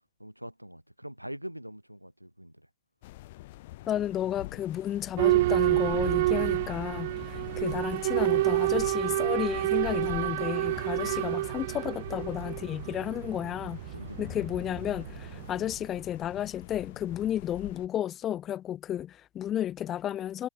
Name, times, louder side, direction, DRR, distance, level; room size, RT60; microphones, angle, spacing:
voice 1, 0.2-2.7 11.0-11.3 13.9-14.3, equal, 90° right, 4.0 m, -43 dB
sound 1, 3.0-17.9, left 18 dB, 50° left, 4.5 m, -45 dB
voice 2, 3.9-13.8 14.2-20.5, left 11 dB, 30° left, 0.8 m, -32 dB
Boat Water vehicle / Alarm, 5.2-15.8, right 17 dB, 55° right, 2.3 m, -29 dB
figure-of-eight pair, 90°, 0 cm